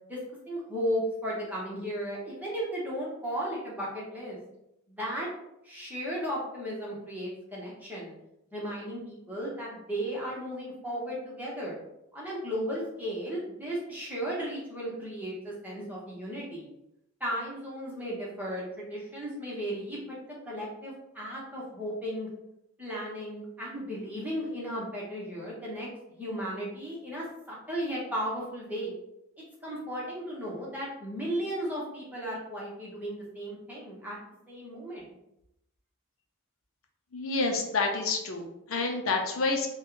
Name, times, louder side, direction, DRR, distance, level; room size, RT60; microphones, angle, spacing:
voice 1, 0.5-4.4 4.9-5.3 5.6-8.1 8.5-11.8 12.1-16.7 17.2-20.2 20.5-22.3 22.8-28.9 29.6-34.2 34.5-35.1, equal, 10° right, -6 dB, 1.0 m, -35 dB
voice 2, 37.1-39.7, left 3 dB, 75° left, 3 dB, 0.6 m, -28 dB
4.1 x 2.3 x 3.8 m, 0.85 s
head